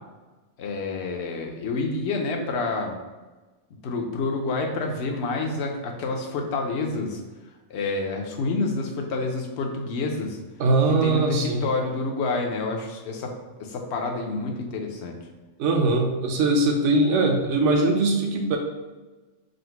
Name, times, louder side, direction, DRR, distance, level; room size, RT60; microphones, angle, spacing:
voice 1, 0.6-3.0 3.8-7.2 7.7-10.4 11.0-15.2, left 3 dB, 70° left, 1 dB, 0.9 m, -28 dB
voice 2, 10.6-11.6 15.6-18.6, right 2 dB, 75° right, 3 dB, 0.9 m, -21 dB
3.8 x 2.1 x 4.4 m, 1.2 s
omnidirectional pair, 1.3 m